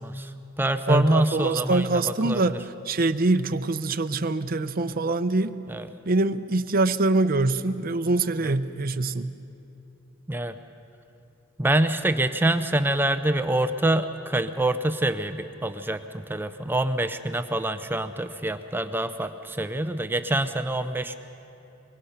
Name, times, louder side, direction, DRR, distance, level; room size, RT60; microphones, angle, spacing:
voice 1, 0.0-2.4 5.7-5.9 8.4-8.6 10.3-10.6 11.6-21.1, right 1 dB, 10° right, 10 dB, 0.5 m, -26 dB
voice 2, 0.9-5.5 6.1-9.3, right 2 dB, 45° right, 10 dB, 0.6 m, -24 dB
24.0 x 22.0 x 5.7 m, 2.8 s
head